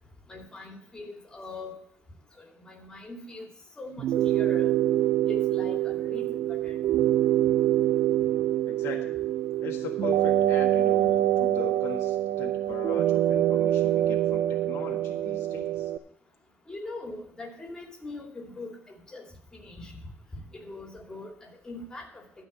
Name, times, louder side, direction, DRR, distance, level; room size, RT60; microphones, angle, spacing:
voice 1, 0.3-1.7 2.4-3.5 3.8-4.7 5.3-6.8 16.7-19.2 19.5-19.9 20.5-22.2, left 2 dB, 15° left, 0 dB, 2.7 m, -41 dB
sound 1, 4.0-16.0, right 12 dB, 75° right, 0.6 m, -25 dB
voice 2, 8.7-9.2 9.6-15.9, left 7 dB, 75° left, 1 dB, 1.6 m, -40 dB
12.5 x 4.8 x 7.5 m, 0.66 s
cardioid pair, 160°, 4 cm